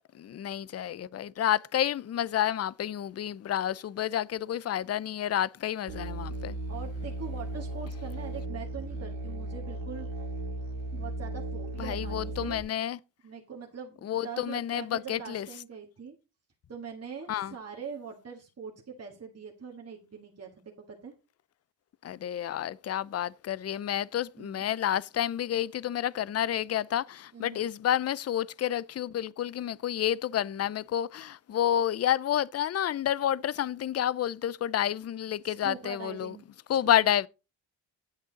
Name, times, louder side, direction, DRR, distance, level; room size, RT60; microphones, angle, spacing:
voice 1, 0.1-6.6 11.8-13.0 14.0-15.5 17.3-17.5 22.0-36.4 36.7-37.3, left 11 dB, 35° left, 0.4 m, -29 dB
Musical instrument, 5.9-12.6, right 1 dB, 85° right, 2.1 m, -36 dB
voice 2, 6.7-10.1 10.9-12.5 13.2-16.1 16.7-20.6 20.9-21.1 24.4-24.7 27.3-27.6 35.4-36.5 36.8-37.0, right 6 dB, 35° right, 1.7 m, -43 dB
8.9 x 8.2 x 4.0 m
cardioid pair, 100°, 44 cm